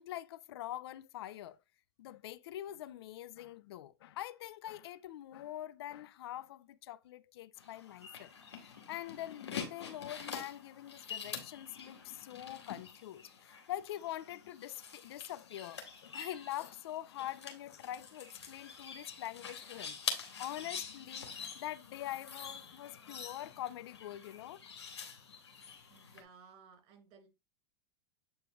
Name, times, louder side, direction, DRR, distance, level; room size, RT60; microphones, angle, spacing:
voice 1, 0.0-1.6 2.0-24.6 24.9-25.0, left 13 dB, 70° left, 0.5 m, -44 dB
sound 1, 7.6-26.2, left 6 dB, 85° left, 2.1 m, -46 dB
voice 2, 25.9-27.3, right 5 dB, 45° right, 4.0 m, -58 dB
8.6 x 4.6 x 3.1 m
hypercardioid pair, 100°, 14 cm